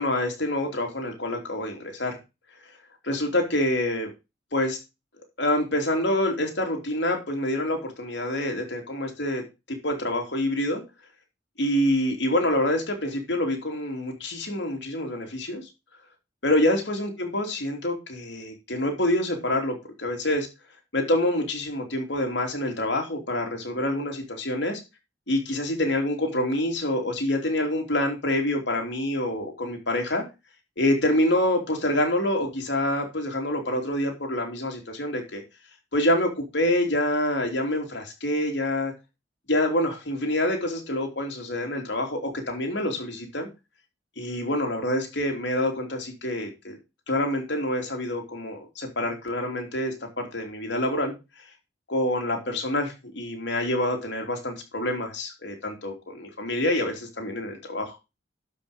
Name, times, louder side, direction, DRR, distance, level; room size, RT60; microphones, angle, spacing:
voice 1, 0.0-2.2 3.0-4.1 4.5-4.8 5.4-9.4 9.7-10.8 11.6-15.6 16.4-20.5 20.9-24.8 25.3-30.2 30.8-35.4 35.9-38.9 39.5-43.5 44.2-46.8 47.1-51.1 51.9-58.0, left 1 dB, 65° left, 2 dB, 3.3 m, -26 dB
12.0 x 5.5 x 5.1 m, 0.27 s
head